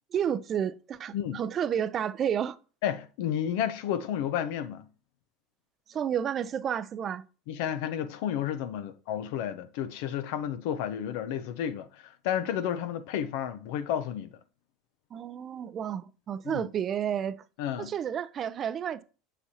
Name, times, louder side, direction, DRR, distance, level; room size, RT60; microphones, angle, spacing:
voice 1, 0.1-2.6 5.9-7.2 15.1-17.4 17.8-19.0, right 9 dB, 40° right, 0.5 m, -31 dB
voice 2, 2.8-4.9 7.5-14.3 16.4-16.7 17.6-17.9, left 10 dB, 70° left, 0.7 m, -31 dB
7.1 x 6.9 x 2.8 m
hypercardioid pair, 90°, 0 cm